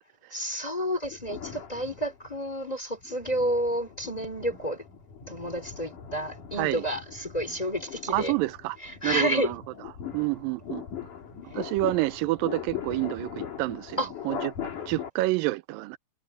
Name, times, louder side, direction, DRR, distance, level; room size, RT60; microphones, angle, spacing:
voice 1, 0.3-4.8 5.3-8.3 8.8-9.5 14.0-14.1, equal, 10° left, 2.6 m, -30 dB
sound 1, 1.0-2.5 3.0-15.1, left 8 dB, 65° left, 4.6 m, -40 dB
voice 2, 8.1-8.8 9.0-9.6 10.1-10.8 11.4-14.5 14.9-16.0, right 19 dB, 90° right, 2.3 m, -28 dB
omnidirectional pair, 4.0 m